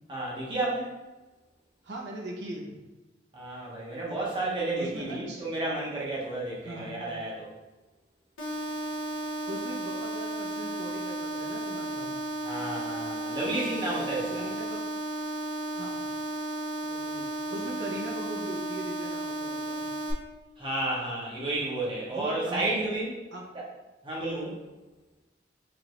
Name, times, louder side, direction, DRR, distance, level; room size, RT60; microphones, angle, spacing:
voice 1, 0.1-0.9 3.3-7.5 12.4-14.4 20.6-23.1 24.0-24.6, right 2 dB, 25° right, -5 dB, 0.9 m, -31 dB
voice 2, 1.8-2.8 4.8-5.4 6.6-7.0 8.5-8.6 9.5-12.1 14.3-14.8 15.7-16.1 16.8-19.9 22.1-22.8 23.3-23.4, right 1 dB, 60° right, -3 dB, 1.0 m, -40 dB
sound 1, 8.4-20.1, right 1 dB, 80° left, 0.9 m, -34 dB
4.9 x 2.6 x 3.0 m, 1.1 s
head